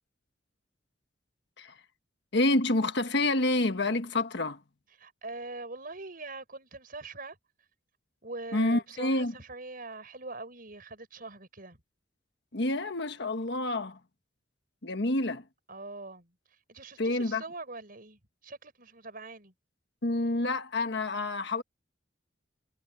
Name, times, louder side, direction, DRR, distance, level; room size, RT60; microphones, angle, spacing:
voice 1, 2.3-4.6 8.5-9.3 12.5-14.0 14.8-15.4 17.0-17.4 20.0-21.6, left 2 dB, 60° left, 1.4 m, -28 dB
voice 2, 5.0-7.4 8.2-11.8 15.7-16.3 16.7-19.5, right 3 dB, 50° right, 5.4 m, -43 dB
head